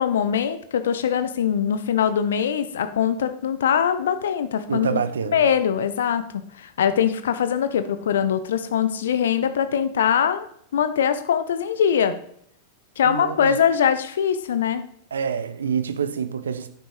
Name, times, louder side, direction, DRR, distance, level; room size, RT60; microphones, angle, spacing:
voice 1, 0.0-5.0 5.3-10.5 10.7-12.1 13.0-14.8, left 8 dB, 65° left, 0.9 m, -22 dB
voice 2, 4.7-5.5 13.0-13.6 15.1-16.7, right 7 dB, 70° right, 0.9 m, -27 dB
10.0 x 8.4 x 4.8 m
figure-of-eight pair, 90°, 0 cm